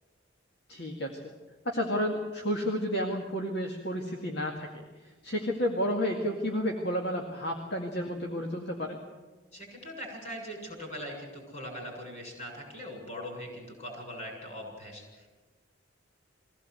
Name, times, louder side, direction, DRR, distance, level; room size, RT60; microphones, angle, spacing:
voice 1, 0.7-1.2 1.7-4.7 5.0-9.0, equal, 55° left, 1 dB, 2.1 m, -31 dB
voice 2, 9.5-15.3, equal, 35° left, 1 dB, 7.8 m, -41 dB
22.0 x 17.0 x 7.9 m, 1.3 s
head